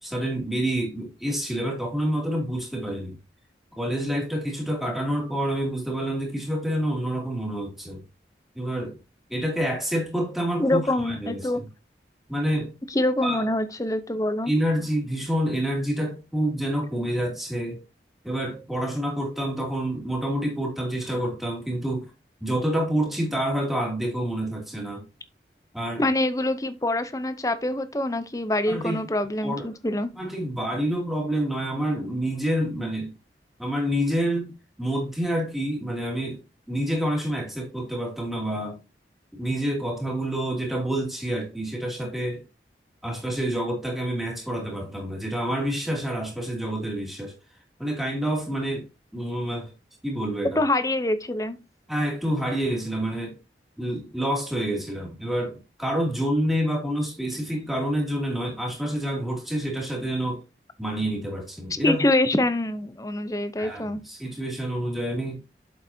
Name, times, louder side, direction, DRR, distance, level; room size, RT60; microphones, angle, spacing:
voice 1, 0.0-3.2 3.8-8.0 8.5-9.0 9.3-11.7 12.3-12.7 13.2-13.4 14.5-17.8 18.2-22.1 22.4-25.1 25.7-26.0 28.7-29.0 29.4-29.7 30.2-33.1 33.6-34.5 34.8-36.4 36.7-38.8 39.3-42.4 43.0-47.3 47.8-48.9 49.1-49.7 50.0-50.6 51.9-53.4 53.8-60.4 60.8-62.0 63.6-65.4, right 1 dB, ahead, 2.7 m, -28 dB
voice 2, 10.6-11.6 12.9-14.5 26.0-30.1 50.6-51.6 61.8-64.0, left 1 dB, 20° left, 0.7 m, -25 dB
8.3 x 7.1 x 2.8 m
head